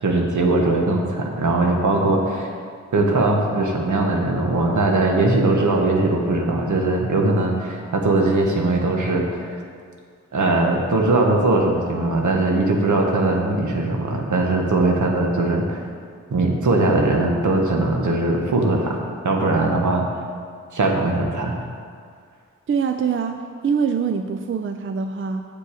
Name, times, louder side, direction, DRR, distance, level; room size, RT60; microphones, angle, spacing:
voice 1, 0.0-2.5 2.9-9.6 10.3-15.8 16.3-20.1 20.7-21.6, right 2 dB, 75° right, 1 dB, 1.3 m, -20 dB
voice 2, 22.7-25.5, right 6 dB, 40° right, 7 dB, 0.4 m, -24 dB
7.3 x 7.0 x 4.9 m, 2.1 s
cardioid pair, 60°, 31 cm